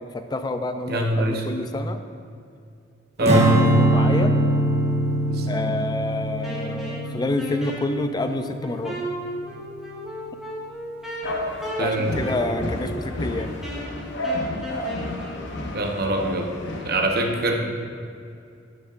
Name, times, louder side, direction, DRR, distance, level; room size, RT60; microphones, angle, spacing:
voice 1, 0.1-2.0 3.2-4.4 5.5-9.0 11.8-13.5, left 2 dB, 20° left, 8 dB, 0.4 m, -28 dB
voice 2, 0.9-1.4 3.2-3.6 5.3-5.7 11.8-12.2 15.7-16.5 16.9-17.5, right 1 dB, 55° right, 1 dB, 0.8 m, -23 dB
Strum, 3.3-9.6, right 1 dB, 35° right, 1.0 m, -23 dB
Wind instrument woodwind instrument, 6.4-15.4, equal, 5° right, 1.6 m, -35 dB
sound 1, 11.2-17.0, left 1 dB, 65° left, 0.7 m, -31 dB
10.0 x 6.5 x 2.5 m, 2.4 s
head